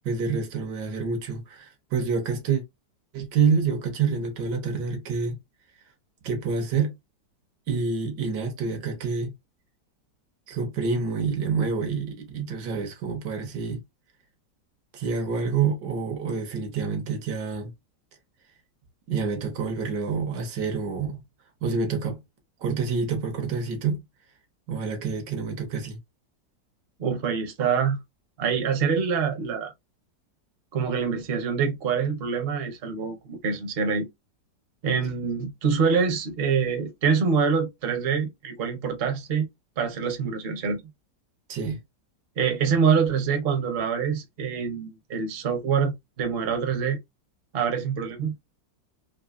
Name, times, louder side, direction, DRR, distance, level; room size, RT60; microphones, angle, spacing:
voice 1, 0.0-2.6 3.1-5.4 6.2-6.9 7.7-9.3 10.5-13.8 14.9-17.7 19.1-21.2 21.6-22.2 22.6-24.0 24.7-26.0 41.5-41.8, right 5 dB, 75° right, 1.6 m, -27 dB
voice 2, 27.0-28.0 28.4-29.7 30.7-34.1 34.8-39.5 39.8-40.8 42.4-47.0 47.5-48.3, right 6 dB, 45° right, 0.9 m, -25 dB
3.8 x 2.6 x 2.5 m
omnidirectional pair, 1.9 m